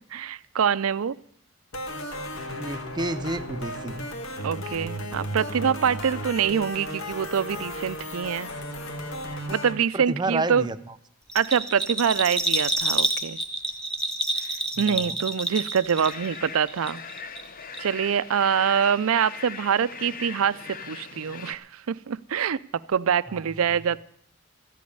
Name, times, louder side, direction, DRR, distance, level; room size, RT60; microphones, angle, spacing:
voice 1, 0.1-1.2 4.4-8.5 9.5-10.7 11.3-13.4 14.8-17.0 17.8-20.6 20.9-22.6 22.9-24.0, right 7 dB, 75° right, 17 dB, 0.5 m, -25 dB
sound 1, 1.7-9.7, equal, 65° left, 1.9 m, -34 dB
voice 2, 2.5-4.0 9.9-10.9 14.8-15.2 23.3-23.4, right 2 dB, 20° right, 11 dB, 0.6 m, -30 dB
Bell, 11.3-16.4 16.7-17.5 17.7-17.8, right 1 dB, 5° left, 1.2 m, -28 dB
sound 2, 15.9-21.5, left 5 dB, 40° left, 0.8 m, -40 dB
13.5 x 8.4 x 9.5 m, 0.68 s
head